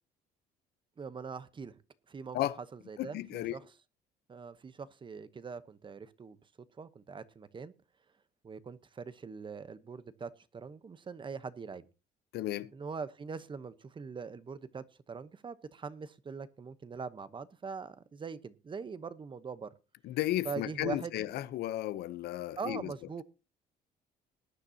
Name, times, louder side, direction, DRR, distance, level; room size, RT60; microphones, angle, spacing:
voice 1, 1.0-1.8 2.1-2.4 2.7-3.6 4.3-6.4 6.8-7.7 8.4-11.9 12.7-19.7 20.4-21.1 22.6-23.2, right 5 dB, 30° right, 1.0 m, -42 dB
voice 2, 3.0-3.5 12.3-12.7 20.0-22.9, left 14 dB, 75° left, 0.9 m, -34 dB
20.0 x 9.8 x 2.9 m
cardioid pair, 110°, 17 cm